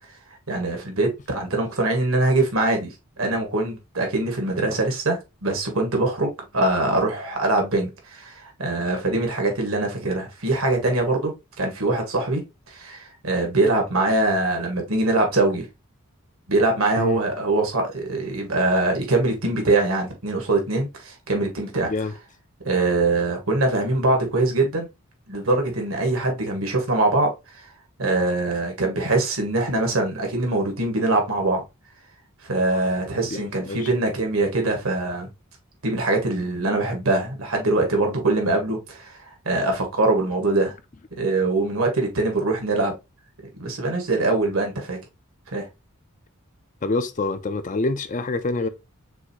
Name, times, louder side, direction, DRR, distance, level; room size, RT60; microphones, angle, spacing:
voice 1, 0.5-15.7 16.5-21.9 22.6-24.9 25.3-27.7 28.0-31.6 32.4-35.3 35.8-40.7 41.2-42.9 43.6-45.0 45.5-45.7, right 2 dB, 70° right, 1.7 m, -23 dB
voice 2, 33.3-33.8 46.8-48.7, left 3 dB, 35° left, 0.5 m, -26 dB
6.2 x 2.7 x 3.0 m
head